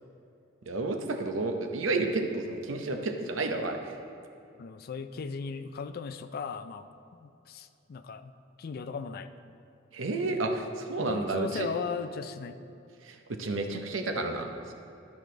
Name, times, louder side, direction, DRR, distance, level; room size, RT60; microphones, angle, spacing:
voice 1, 0.7-3.9 9.9-11.7 13.0-14.7, right 2 dB, 85° right, 4 dB, 0.8 m, -31 dB
voice 2, 4.6-6.9 7.1-8.3 8.6-9.3 11.0-12.6, left 5 dB, 50° left, 10 dB, 0.4 m, -37 dB
12.0 x 4.8 x 3.9 m, 2.8 s
head